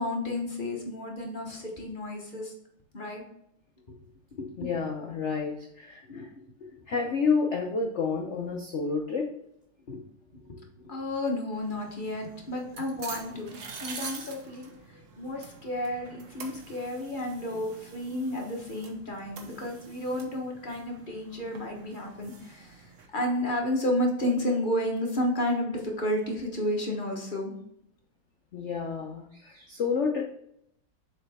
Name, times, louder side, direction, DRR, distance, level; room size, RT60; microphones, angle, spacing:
voice 1, 0.0-2.5 2.9-3.2 4.4-4.8 6.1-6.3 6.6-6.8 9.9-10.0 10.3-14.7 15.2-27.5, left 1 dB, 30° left, 0 dB, 0.9 m, -32 dB
voice 2, 4.6-6.3 6.9-9.3 17.5-17.6 28.5-30.2, left 5 dB, 85° left, 1 dB, 0.6 m, -29 dB
sound 1, 11.5-23.1, right 4 dB, 50° right, 1.0 m, -46 dB
7.2 x 4.5 x 3.4 m, 0.75 s
omnidirectional pair, 2.3 m